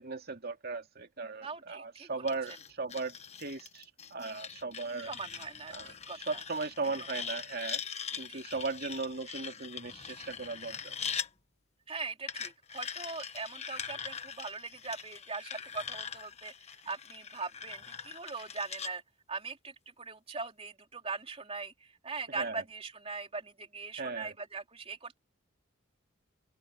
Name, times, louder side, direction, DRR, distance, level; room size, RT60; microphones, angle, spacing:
voice 1, 0.0-5.1 5.7-7.8 8.2-10.9 22.3-22.6 24.0-24.3, right 3 dB, 45° right, 2.4 m, -37 dB
voice 2, 1.4-2.6 5.0-6.4 8.1-8.4 9.3-9.4 11.9-19.0 19.3-25.2, right 4 dB, 25° right, 3.5 m, -41 dB
sound 1, 2.3-11.3 12.3-18.9, left 7 dB, 30° left, 1.3 m, -42 dB
open air
head